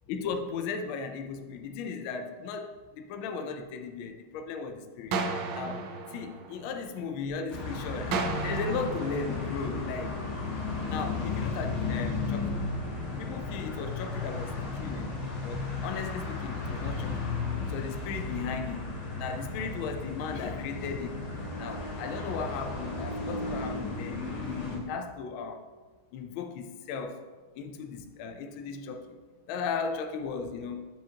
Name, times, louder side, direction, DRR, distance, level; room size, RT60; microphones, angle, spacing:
voice 1, 0.1-5.1 5.5-5.8 6.1-10.2 10.9-12.4 13.2-14.5 14.8-17.2 17.6-18.9 19.2-21.2 21.6-24.2 24.6-25.7 26.1-27.3 27.6-29.2 29.5-30.8, left 5 dB, 75° left, 6 dB, 1.3 m, -36 dB
sound 1, 5.1-7.2 8.1-10.2, right 4 dB, 80° right, 1.5 m, -34 dB
sound 2, 7.5-24.8, left 3 dB, 50° left, 1.7 m, -34 dB
8.8 x 5.0 x 2.8 m, 1.4 s
omnidirectional pair, 2.4 m